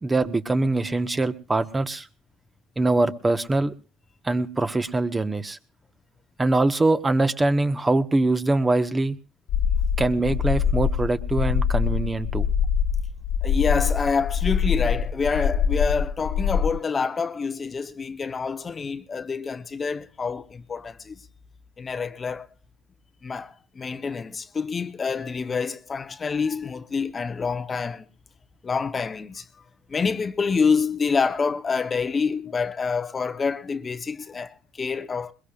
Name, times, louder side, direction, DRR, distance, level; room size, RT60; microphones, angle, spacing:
voice 1, 0.0-2.1 2.8-3.7 4.2-5.6 6.4-9.2 10.0-12.5, right 2 dB, 20° right, 1.2 m, -23 dB
sound 1, 9.5-16.7, left 7 dB, 75° left, 1.5 m, -24 dB
voice 2, 13.4-21.2 21.8-22.5 23.2-28.0 28.6-29.6 29.9-35.3, left 5 dB, 30° left, 0.9 m, -27 dB
21.5 x 21.0 x 2.4 m
supercardioid pair, 85°, 0 cm